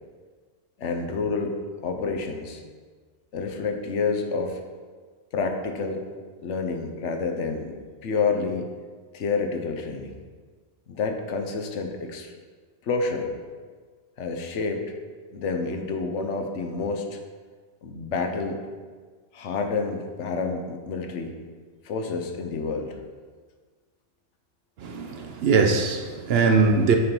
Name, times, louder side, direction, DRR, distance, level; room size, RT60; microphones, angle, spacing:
voice 1, 0.8-1.6 1.8-2.6 3.3-4.6 5.3-6.1 6.4-8.7 9.1-10.2 10.9-12.3 12.8-13.3 14.2-14.9 15.3-17.2 17.8-18.6 19.3-21.3 21.8-23.0, left 4 dB, 70° left, 1.1 m, -28 dB
voice 2, 24.8-27.0, right 4 dB, 60° right, 0.8 m, -21 dB
6.8 x 4.4 x 5.3 m
omnidirectional pair, 1.3 m